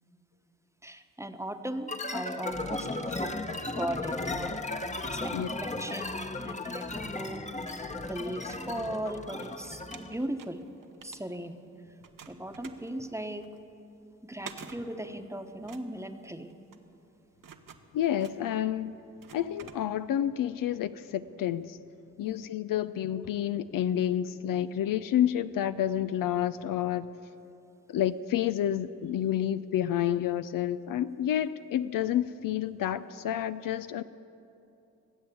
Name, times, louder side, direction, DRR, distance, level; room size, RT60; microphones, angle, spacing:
voice 1, 0.8-3.4 3.7-4.5 5.0-7.5 8.0-10.6 11.0-11.6 12.3-13.5 14.2-16.5 22.2-22.5, right 1 dB, 10° right, 7 dB, 1.1 m, -38 dB
sound 1, 1.9-10.2, left 2 dB, 20° left, 1.0 m, -35 dB
sound 2, 3.5-4.5 4.9-6.6 7.2-7.3 7.6-9.5 9.7-11.7 12.0-20.3, right 7 dB, 65° right, 1.1 m, -51 dB
voice 2, 17.9-18.9 19.3-21.8 22.2-27.1 27.9-34.0, left 11 dB, 65° left, 13 dB, 0.5 m, -29 dB
20.0 x 7.8 x 8.4 m, 2.8 s
supercardioid pair, 40°, 35 cm